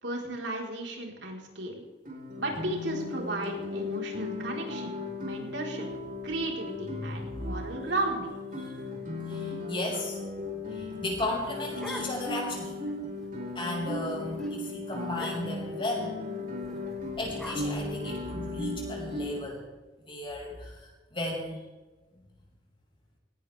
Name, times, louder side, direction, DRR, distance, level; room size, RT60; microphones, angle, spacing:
voice 1, 0.0-1.8 2.4-4.9 5.2-5.9 6.2-8.3, right 2 dB, 85° right, 0 dB, 4.2 m, -34 dB
Guitar, 2.0-19.4, left 2 dB, 45° right, 4.7 m, -36 dB
voice 2, 7.0-7.5 7.8-7.9 8.6-8.8 9.3-10.2 10.5-12.8 13.5-16.2 17.2-19.6 20.0-21.6, left 2 dB, 30° left, -2 dB, 5.7 m, -35 dB
sound 1, 11.2-12.5 12.9-13.0 13.2-13.5 13.9-14.1 14.4-14.5 15.1-15.7 16.6-18.6, equal, 5° left, 3.9 m, -43 dB
18.5 x 18.0 x 3.5 m, 1.2 s
head